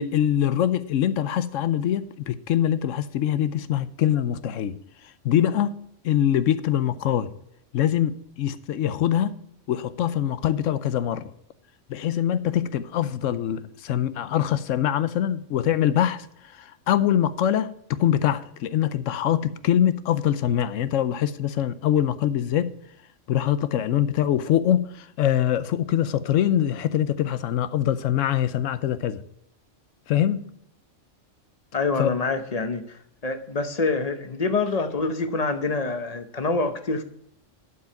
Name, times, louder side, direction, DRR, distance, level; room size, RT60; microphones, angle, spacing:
voice 1, 0.0-4.7 5.2-5.8 6.0-7.3 7.7-9.4 9.7-11.3 11.9-16.3 16.5-22.7 23.3-29.2 30.1-30.4 32.0-32.1, left 10 dB, 85° left, 1.0 m, -23 dB
voice 2, 31.7-37.0, left 3 dB, 35° left, 0.8 m, -26 dB
11.5 x 4.8 x 5.9 m
omnidirectional pair, 1.3 m